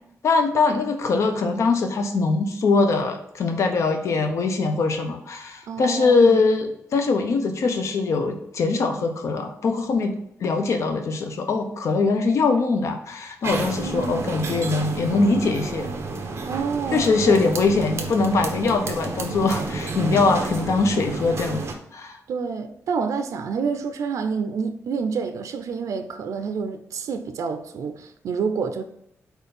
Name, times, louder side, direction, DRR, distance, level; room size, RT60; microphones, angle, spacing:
voice 1, 0.2-10.2 10.4-15.9 16.9-22.2, left 3 dB, 65° left, 0.8 m, -22 dB
voice 2, 5.7-6.4 13.8-14.3 16.4-17.4 22.3-28.8, right 5 dB, 80° right, 0.6 m, -28 dB
sound 1, 13.4-21.7, right 3 dB, 50° right, 1.1 m, -31 dB
4.6 x 4.5 x 5.2 m
wide cardioid pair, 160°, 5 cm